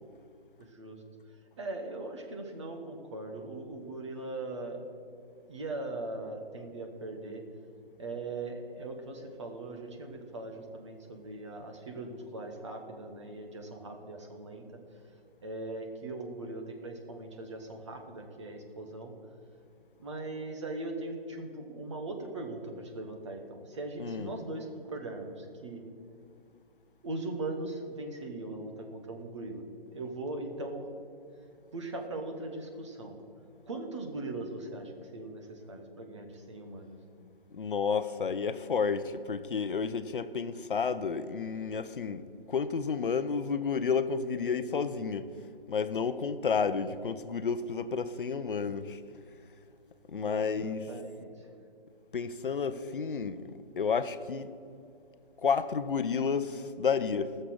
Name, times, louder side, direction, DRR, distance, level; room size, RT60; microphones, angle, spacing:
voice 1, 0.6-1.0 1.6-4.9 5.5-7.4 8.0-14.6 15.4-19.1 20.0-25.8 27.0-29.6 29.9-30.9 31.7-33.1 33.6-36.9 50.2-51.3, right 2 dB, 30° right, 1.3 m, -40 dB
voice 2, 24.0-24.3 37.5-42.2 42.5-45.3 45.7-49.0 50.1-50.9 52.1-54.5 55.4-57.4, left 5 dB, 60° left, 0.8 m, -31 dB
15.5 x 6.7 x 6.3 m
hypercardioid pair, 170°, 30 cm